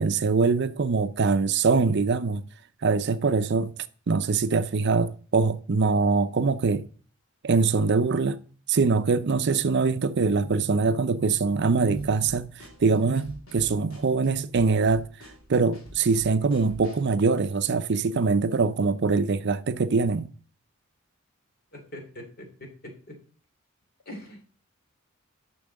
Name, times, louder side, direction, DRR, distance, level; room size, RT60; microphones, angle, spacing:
voice 1, 0.0-2.4 2.8-3.7 4.1-6.8 7.4-8.4 8.7-15.1 15.5-20.3, right 4 dB, 55° right, 0.5 m, -23 dB
Drum kit / Snare drum, 11.9-17.2, equal, 70° left, 2.5 m, -47 dB
voice 2, 21.7-23.2 24.0-24.4, left 1 dB, 45° left, 3.2 m, -43 dB
7.1 x 6.1 x 7.5 m
head